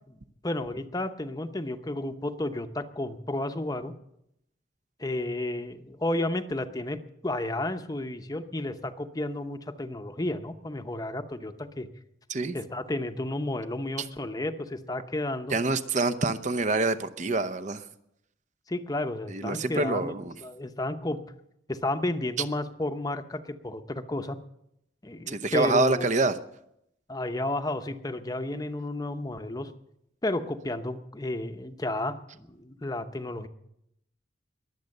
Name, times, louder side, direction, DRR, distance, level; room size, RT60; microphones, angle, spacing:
voice 1, 0.4-3.9 5.0-11.9 12.5-15.6 18.7-20.1 20.4-21.2 21.7-24.4 25.0-26.1 27.1-29.7 30.2-33.5, left 1 dB, 20° left, 8 dB, 0.8 m, -32 dB
voice 2, 15.5-17.8 19.3-20.4 25.3-26.4, right 3 dB, 40° right, 12 dB, 0.7 m, -26 dB
21.5 x 8.1 x 6.6 m, 0.78 s
head